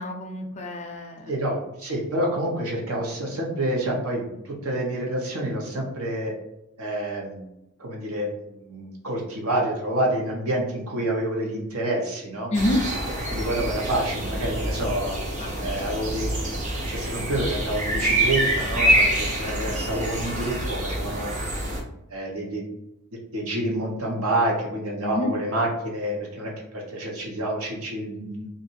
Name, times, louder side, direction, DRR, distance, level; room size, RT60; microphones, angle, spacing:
voice 1, 0.0-1.3 12.5-12.8 15.4-15.9 25.0-25.3, left 1 dB, 30° left, 3 dB, 0.5 m, -28 dB
voice 2, 1.3-6.3 6.8-7.5 7.8-12.5 13.3-15.2 15.6-16.6 16.9-21.6 22.1-22.6 23.3-28.5, right 1 dB, 70° right, -1 dB, 1.0 m, -28 dB
sound 1, 12.5-21.8, right 1 dB, 30° right, 0.6 m, -26 dB
2.6 x 2.5 x 4.1 m, 0.85 s
head